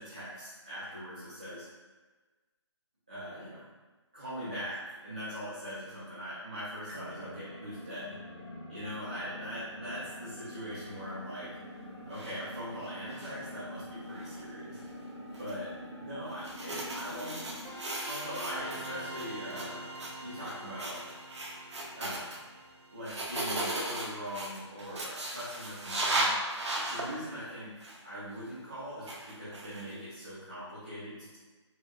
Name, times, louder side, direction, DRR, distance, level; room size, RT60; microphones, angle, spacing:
voice 1, 0.0-1.6 3.1-3.6 4.1-8.2 8.7-11.6 12.1-14.8 15.4-17.4 18.0-19.9 20.2-21.0 21.9-22.5 22.9-26.4 26.9-31.4, equal, 15° right, -13 dB, 0.5 m, -41 dB
sound 1, 6.9-17.8, left 1 dB, 45° right, 1.4 m, -45 dB
sound 2, 12.1-12.4 12.8-13.5 14.2-14.4 15.3-15.5 16.3-18.9 19.1-19.7 19.9-20.1 20.4-20.5 20.8-22.4 23.0-27.1 27.8-28.0 29.0-30.0, right 2 dB, 65° right, 0.7 m, -36 dB
sound 3, 17.6-24.3, right 1 dB, 85° right, 1.1 m, -45 dB
4.6 x 2.1 x 2.3 m, 1.3 s
hypercardioid pair, 180°, 15 cm